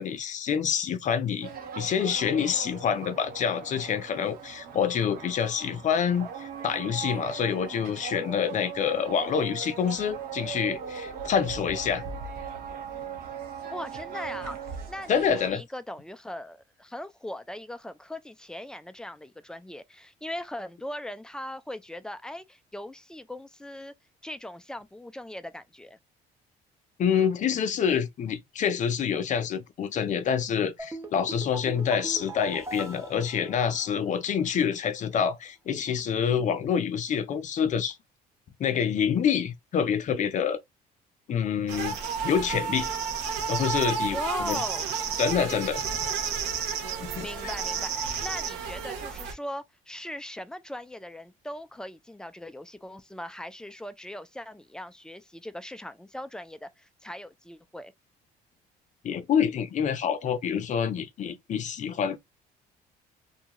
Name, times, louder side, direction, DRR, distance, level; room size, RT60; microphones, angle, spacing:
voice 1, 0.0-1.5 1.8-12.1 15.1-15.6 27.0-38.0 38.6-40.6 41.3-42.0 42.2-42.9 43.5-44.6 45.2-45.8 47.0-47.3 59.0-62.2, left 7 dB, 45° left, 0.6 m, -27 dB
sound 1, 1.4-15.5, right 7 dB, 65° right, 1.0 m, -39 dB
voice 2, 13.7-23.9 24.2-26.0 44.1-44.9 47.2-57.9, left 1 dB, 5° left, 0.3 m, -39 dB
sound 2, 30.8-34.2 34.5-34.6, right 2 dB, 15° right, 0.8 m, -41 dB
sound 3, 41.7-49.3, right 6 dB, 85° right, 0.8 m, -31 dB
2.6 x 2.4 x 2.9 m
cardioid pair, 110°, 17 cm